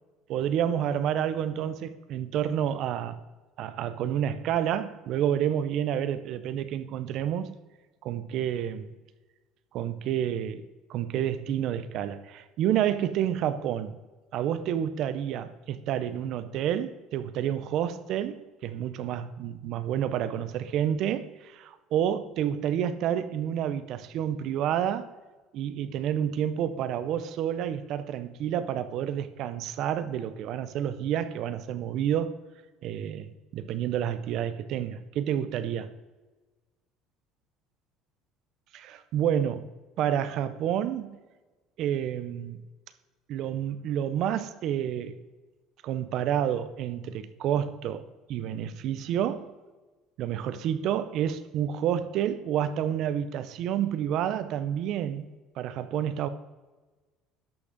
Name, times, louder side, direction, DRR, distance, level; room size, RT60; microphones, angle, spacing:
voice 1, 0.3-3.2 3.6-7.5 8.0-8.9 9.7-10.6 10.9-13.9 14.3-25.1 25.5-32.3 32.8-35.9 38.7-39.7 40.0-41.2 41.8-42.6 43.3-45.1 45.8-49.5 50.2-55.3 55.6-56.3, right 10 dB, 45° right, 0.6 m, -29 dB
12.0 x 6.2 x 4.0 m
cardioid pair, 175°, 0 cm